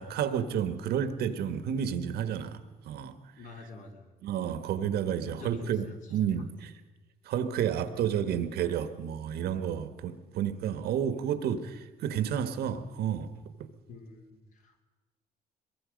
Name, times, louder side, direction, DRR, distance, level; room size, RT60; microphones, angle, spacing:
voice 1, 0.0-3.1 4.2-6.7 7.2-13.3, right 9 dB, 70° right, 1.6 m, -31 dB
voice 2, 3.4-4.1 5.2-6.2 13.9-14.8, left 3 dB, 50° left, 3.1 m, -47 dB
23.0 x 22.5 x 5.3 m
cardioid pair, 110°, 17 cm